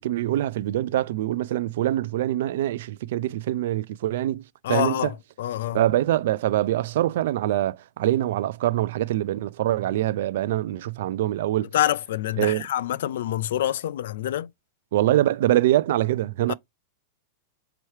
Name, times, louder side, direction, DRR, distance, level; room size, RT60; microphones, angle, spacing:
voice 1, 0.0-5.1 5.7-11.7 12.4-12.6 14.9-16.5, right 13 dB, 70° right, 0.3 m, -24 dB
voice 2, 4.6-5.1 5.4-5.8 11.7-14.5 16.5-16.6, left 12 dB, 75° left, 0.3 m, -26 dB
4.6 x 2.9 x 3.2 m
supercardioid pair, 140°, 0 cm